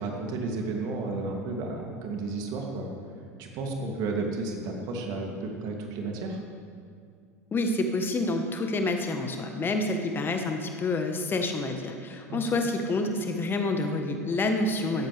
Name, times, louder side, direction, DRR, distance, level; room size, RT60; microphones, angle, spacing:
voice 1, 0.0-2.9 3.4-6.4 12.3-12.4, right 3 dB, 50° right, 1 dB, 2.7 m, -32 dB
voice 2, 7.5-15.1, left 2 dB, 25° left, 5 dB, 1.3 m, -28 dB
17.5 x 14.0 x 3.4 m, 2.3 s
figure-of-eight pair, 80°, 9 cm